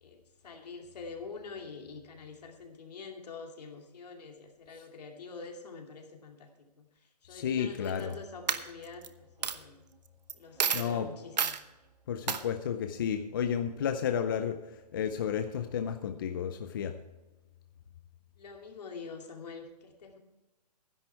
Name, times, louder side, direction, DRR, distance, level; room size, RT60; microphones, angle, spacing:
voice 1, 0.0-9.8 10.3-11.6 18.4-20.2, left 4 dB, 70° left, 2 dB, 2.7 m, -46 dB
voice 2, 7.3-8.1 10.7-11.1 12.1-17.0, left 8 dB, 30° left, 8 dB, 0.5 m, -32 dB
Coin (dropping), 7.8-8.1 8.5-9.1 9.4-9.6 10.3-10.4 10.6-10.9 11.4-11.6 12.3-12.4, right 7 dB, 80° right, 1.0 m, -29 dB
12.0 x 10.5 x 4.6 m, 1.1 s
hypercardioid pair, 170°, 21 cm